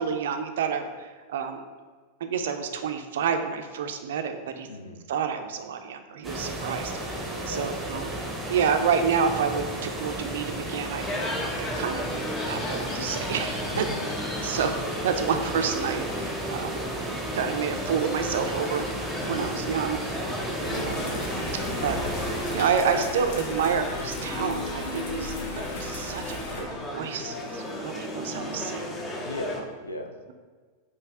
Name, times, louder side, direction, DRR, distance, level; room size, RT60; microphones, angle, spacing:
voice 1, 0.0-1.6 2.2-4.7 5.1-8.1 8.5-11.1 11.6-12.2 12.5-13.9 14.4-16.8 17.3-18.8 19.2-20.0 20.6-21.0 21.8-22.0 22.5-28.9, right 6 dB, 60° right, 6 dB, 0.4 m, -29 dB
voice 2, 4.7-5.0 7.5-7.7 13.7-14.0 19.2-19.5 29.2-30.2, left 1 dB, 75° left, 5 dB, 0.4 m, -36 dB
sound 1, 6.2-22.7, right 1 dB, 10° right, 0.8 m, -34 dB
sound 2, 11.0-29.6, left 1 dB, 20° left, 0.6 m, -35 dB
sound 3, 20.6-26.6, left 2 dB, 50° left, 0.8 m, -36 dB
5.2 x 2.6 x 3.5 m, 1.5 s
figure-of-eight pair, 90°, 0 cm